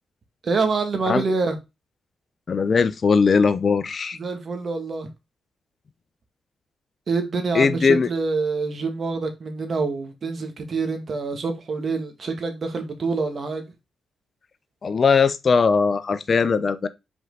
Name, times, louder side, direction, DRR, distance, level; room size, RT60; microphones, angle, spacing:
voice 1, 0.4-1.6 4.1-5.1 7.1-13.7, right 4 dB, 55° right, 1.9 m, -26 dB
voice 2, 2.5-4.2 7.5-8.1 14.8-16.9, left 5 dB, 50° left, 0.8 m, -19 dB
5.3 x 4.8 x 3.9 m
supercardioid pair, 50°, 0 cm